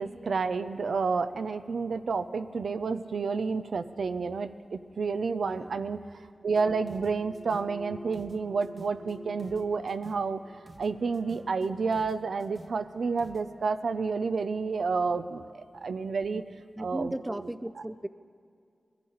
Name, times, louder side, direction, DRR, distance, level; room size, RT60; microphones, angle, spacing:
voice 1, 0.0-6.0 6.4-10.4 10.8-16.4 16.8-17.4, right 4 dB, 85° right, 11 dB, 0.5 m, -30 dB
voice 2, 5.4-5.9 16.4-18.1, right 1 dB, 15° right, 13 dB, 0.4 m, -37 dB
sound 1, 6.5-13.6, right 1 dB, 45° right, 0.8 m, -48 dB
21.0 x 14.0 x 3.9 m, 2.3 s
cardioid pair, 60°, 0 cm